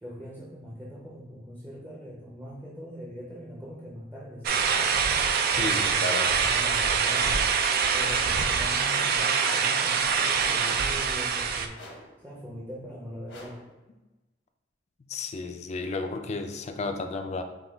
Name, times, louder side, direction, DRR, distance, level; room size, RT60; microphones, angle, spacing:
voice 1, 0.0-5.0 5.5-7.5 7.9-11.7 12.2-13.6, equal, 10° right, -5 dB, 0.6 m, -41 dB
sound 1, 4.4-11.7, right 6 dB, 55° right, 0.3 m, -24 dB
voice 2, 5.5-6.3 15.0-17.4, left 3 dB, 35° left, 6 dB, 0.3 m, -33 dB
sound 2, 8.9-9.3 10.3-10.8 11.7-12.2 13.3-13.8, left 1 dB, 80° left, 1.0 m, -46 dB
5.6 x 2.3 x 3.4 m, 1.1 s
head